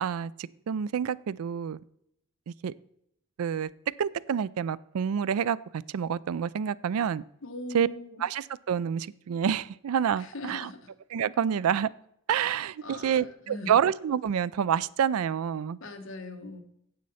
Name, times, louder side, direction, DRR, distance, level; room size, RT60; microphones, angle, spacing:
voice 1, 0.0-1.8 2.6-2.7 3.4-3.7 4.0-7.2 7.7-7.9 8.2-10.7 11.1-11.9 12.3-15.8, right 8 dB, 85° right, 20 dB, 0.4 m, -28 dB
voice 2, 7.4-8.2 10.2-10.9 12.8-13.8 15.8-16.6, left 2 dB, 65° left, 5 dB, 1.3 m, -40 dB
9.5 x 7.7 x 4.1 m, 0.74 s
head